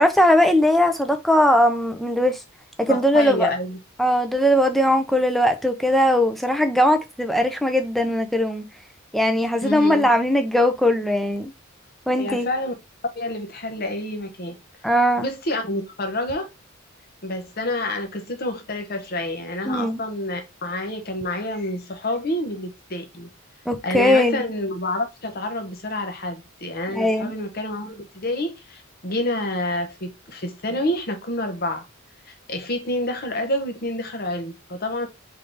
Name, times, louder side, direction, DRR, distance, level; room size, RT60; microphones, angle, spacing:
voice 1, 0.0-2.4 2.8-3.5 4.0-8.6 9.1-11.5 12.1-12.5 14.8-15.3 19.7-20.0 23.7-24.4 26.9-27.3, left 1 dB, ahead, 0.6 m, -19 dB
voice 2, 2.9-3.8 9.6-10.1 12.2-12.7 13.1-14.6 15.2-16.5 17.2-23.3 23.8-31.8 32.3-35.1, left 1 dB, 45° left, 1.0 m, -28 dB
3.8 x 3.7 x 3.3 m
head